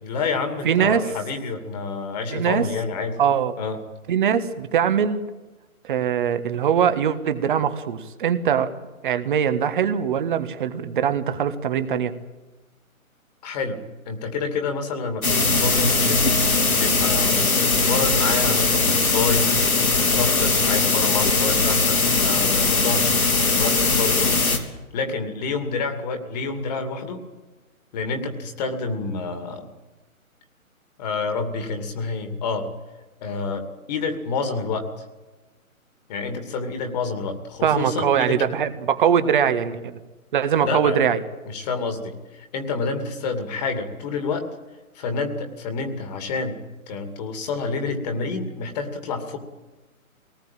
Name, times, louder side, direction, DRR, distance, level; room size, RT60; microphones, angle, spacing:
voice 1, 0.0-3.2 3.6-3.8 13.4-13.8 14.1-16.3 16.8-19.5 20.1-23.2 23.5-24.3 24.9-27.2 27.9-29.7 31.0-32.7 33.2-34.9 36.1-38.5 40.7-41.0 41.5-44.5 44.9-46.6 46.9-49.4, left 4 dB, 30° left, 6 dB, 2.5 m, -28 dB
voice 2, 0.6-1.1 2.3-2.6 3.2-3.5 4.1-5.2 5.8-8.7 9.0-12.1 37.6-40.0 40.3-41.2, right 8 dB, 35° right, 10 dB, 1.6 m, -22 dB
sound 1, 15.2-24.6, left 3 dB, 75° left, 3.9 m, -20 dB
23.5 x 19.0 x 8.9 m, 1.2 s
figure-of-eight pair, 140°, 43 cm